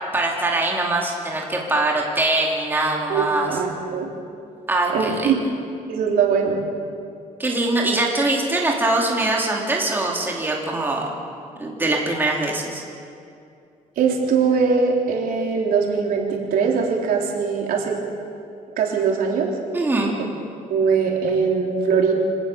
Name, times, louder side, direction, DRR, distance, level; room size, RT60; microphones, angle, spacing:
voice 1, 0.1-3.5 4.7-5.3 7.4-11.1 11.6-12.8 19.7-20.2, right 2 dB, 15° right, -1 dB, 3.1 m, -22 dB
voice 2, 3.1-4.1 4.9-5.4 5.9-6.6 14.0-18.0 18.8-19.5 20.7-22.1, right 5 dB, 85° right, 0 dB, 3.7 m, -21 dB
26.0 x 18.0 x 6.9 m, 2.4 s
cardioid pair, 160°, 15 cm